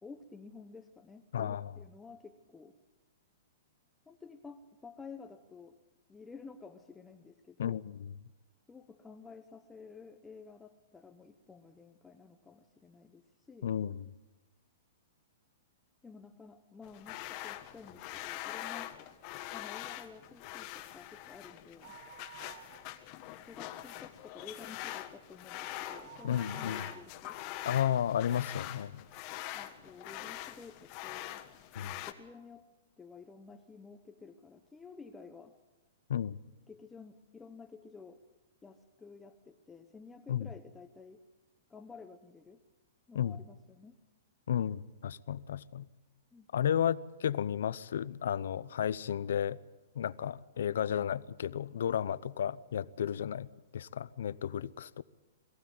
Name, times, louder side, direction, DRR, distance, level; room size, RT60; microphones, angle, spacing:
voice 1, 0.0-2.8 4.1-5.8 6.1-7.8 8.7-13.7 16.0-19.0 19.5-22.0 23.4-27.4 29.5-31.4 31.8-32.7 33.0-35.5 36.7-38.2 38.6-41.2 41.7-42.6 43.1-44.0 46.3-46.5, left 5 dB, 10° left, 0.8 m, -52 dB
voice 2, 1.3-1.7 7.6-7.8 13.6-14.1 26.2-26.9 27.6-29.0 31.8-31.9 36.1-36.4 40.3-40.5 43.1-43.4 44.5-45.9 46.5-49.6 49.9-55.0, left 9 dB, 75° left, 0.7 m, -33 dB
sound 1, 16.8-32.1, left 14 dB, 35° left, 1.4 m, -44 dB
sound 2, 21.8-23.3 23.7-23.8 24.2-28.6 29.1-29.2 30.0-30.1 30.3-30.4, right 11 dB, 65° right, 0.8 m, -53 dB
22.0 x 15.5 x 9.5 m
hypercardioid pair, 165°, 0 cm